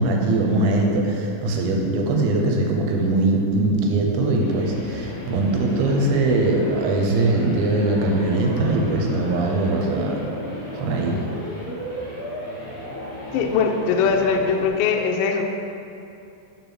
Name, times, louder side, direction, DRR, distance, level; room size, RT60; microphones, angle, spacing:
voice 1, 0.0-10.2 10.8-11.2, right 2 dB, 90° right, 1 dB, 2.6 m, -21 dB
sound 1, 3.8-14.7, equal, 45° left, 0.7 m, -34 dB
voice 2, 13.3-15.4, left 5 dB, 80° left, 3 dB, 2.2 m, -21 dB
5.4 x 5.1 x 5.9 m, 2.6 s
omnidirectional pair, 4.2 m